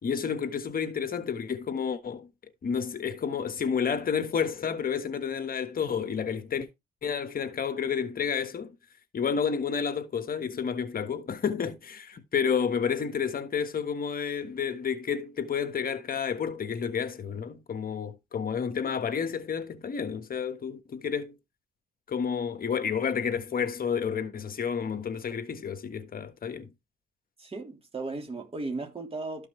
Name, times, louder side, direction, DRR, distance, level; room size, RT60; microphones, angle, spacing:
voice 1, 0.0-2.3 2.6-6.7 7.0-8.8 9.1-21.4 22.1-26.7, left 7 dB, 45° left, 1.4 m, -30 dB
voice 2, 27.4-29.5, right 3 dB, 30° right, 3.1 m, -36 dB
13.0 x 5.8 x 3.2 m
cardioid pair, 90°, 20 cm